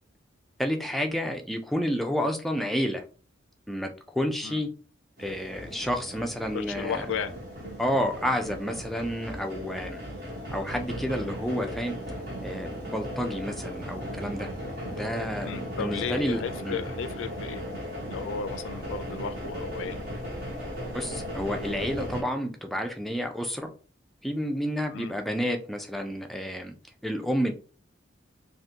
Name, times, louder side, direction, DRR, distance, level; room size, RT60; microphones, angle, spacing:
voice 1, 0.6-3.0 3.7-4.7 5.2-7.0 7.8-10.0 10.5-11.9 12.4-14.5 14.9-16.8 20.9-23.7 24.2-26.7 27.0-27.5, equal, ahead, 3 dB, 0.3 m, -30 dB
sound 1, 5.2-22.2, equal, 50° right, 1.2 m, -37 dB
voice 2, 6.5-7.4 15.4-17.6 18.1-20.0 24.9-25.1, left 6 dB, 80° left, 11 dB, 0.4 m, -34 dB
3.5 x 2.5 x 2.8 m, 0.40 s
head